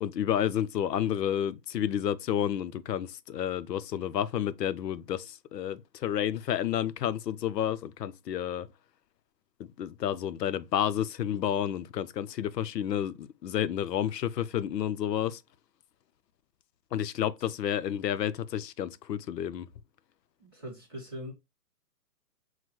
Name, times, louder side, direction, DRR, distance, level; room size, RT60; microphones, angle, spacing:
voice 1, 0.0-8.7 9.6-15.4 16.9-19.7, left 10 dB, 80° left, 0.6 m, -30 dB
voice 2, 20.4-21.3, equal, 15° right, 0.8 m, -41 dB
6.0 x 2.2 x 3.0 m
hypercardioid pair, 175°, 49 cm